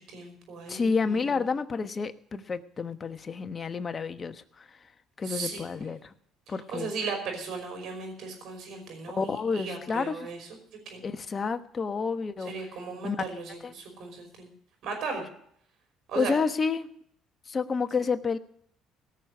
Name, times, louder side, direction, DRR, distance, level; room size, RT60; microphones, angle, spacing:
voice 1, 0.1-1.0 5.2-5.6 6.7-10.4 10.9-11.0 12.5-14.5 14.8-15.2 16.1-16.4, right 4 dB, 65° right, 3 dB, 5.2 m, -36 dB
voice 2, 0.7-4.8 5.2-6.1 6.5-6.9 9.1-10.3 11.0-12.7 13.0-13.2 13.6-13.7 16.1-16.9 17.5-18.4, left 5 dB, 35° left, 10 dB, 1.1 m, -30 dB
17.5 x 6.5 x 8.1 m, 0.65 s
supercardioid pair, 80°, 0 cm